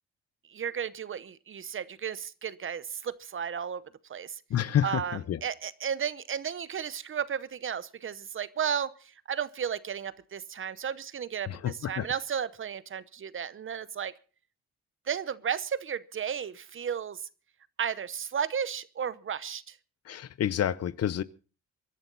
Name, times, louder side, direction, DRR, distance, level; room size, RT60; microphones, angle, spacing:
voice 1, 0.5-4.4 4.8-14.1 15.1-17.3 17.8-19.8, right 8 dB, 45° right, 0.9 m, -34 dB
voice 2, 4.5-5.4 11.5-12.1 20.1-21.2, left 10 dB, 55° left, 0.8 m, -29 dB
24.0 x 11.0 x 4.0 m
cardioid pair, 90°, 30 cm